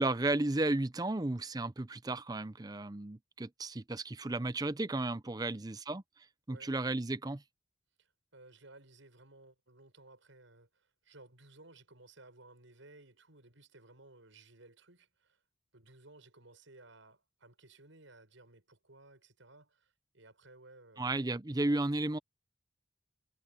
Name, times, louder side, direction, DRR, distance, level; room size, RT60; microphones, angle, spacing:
voice 1, 0.0-6.0 6.5-7.4 21.0-22.2, right 2 dB, 20° right, 0.6 m, -33 dB
voice 2, 8.0-15.4 15.7-21.1, right 2 dB, 90° right, 6.6 m, -58 dB
head